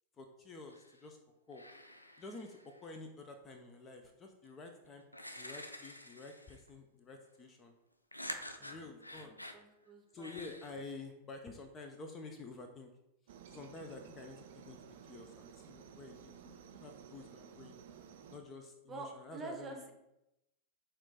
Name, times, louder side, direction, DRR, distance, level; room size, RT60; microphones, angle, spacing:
voice 1, 0.2-1.2 1.5-1.6 2.2-5.0 5.4-7.7 8.6-9.3 10.1-12.9 13.5-17.8 18.3-19.9, left 3 dB, 25° left, 5 dB, 0.5 m, -50 dB
sound 1, 0.7-1.1 1.5-2.9 4.4-4.5 5.1-6.7 8.1-9.6 10.2-10.7, left 1 dB, 85° left, 0.3 m, -48 dB
voice 2, 8.6-10.4 18.9-19.9, right 3 dB, 20° right, 2 dB, 0.8 m, -48 dB
Aircraft, 13.3-18.4, right 8 dB, 55° right, 0.4 m, -54 dB
4.3 x 2.6 x 4.1 m, 0.88 s
figure-of-eight pair, 90°, 0 cm